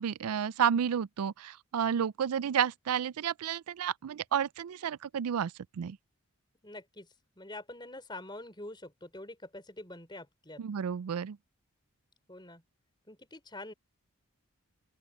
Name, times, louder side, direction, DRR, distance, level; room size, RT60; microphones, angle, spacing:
voice 1, 0.0-6.0 10.6-11.4, right 8 dB, 85° right, 0.4 m, -31 dB
voice 2, 6.6-7.1 7.4-10.6 12.3-12.6 13.1-13.7, left 2 dB, 20° left, 4.4 m, -45 dB
open air
head